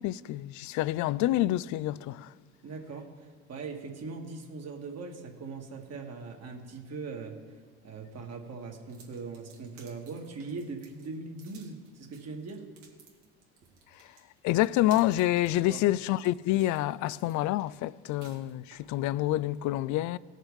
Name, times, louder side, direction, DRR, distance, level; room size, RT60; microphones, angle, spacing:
voice 1, 0.0-2.3 14.4-20.2, left 15 dB, 55° left, 0.5 m, -27 dB
voice 2, 2.6-7.4 7.8-12.6 15.5-15.8, right 4 dB, 45° right, 2.2 m, -41 dB
sound 1, 8.9-18.9, right 6 dB, 90° right, 2.2 m, -57 dB
18.5 x 6.6 x 4.9 m
hypercardioid pair, 75°, 35 cm